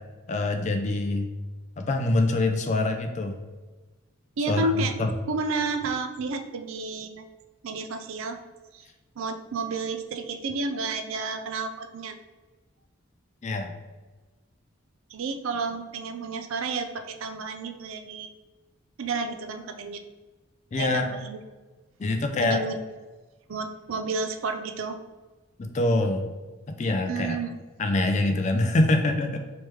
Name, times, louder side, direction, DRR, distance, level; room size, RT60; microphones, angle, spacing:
voice 1, 0.3-1.3 1.8-3.3 4.5-4.7 5.0-5.1 13.4-13.7 20.7-21.1 22.0-22.6 25.6-26.3 26.7-27.4 27.8-29.4, left 2 dB, 35° left, 5 dB, 0.3 m, -24 dB
voice 2, 4.4-4.9 5.3-7.2 7.6-8.4 8.7-8.8 9.2-12.2 15.1-18.3 19.0-20.0 20.8-21.4 22.4-22.7 23.5-25.0 27.1-27.5, right 3 dB, 70° right, 7 dB, 0.4 m, -31 dB
3.2 x 3.0 x 3.2 m, 1.2 s
head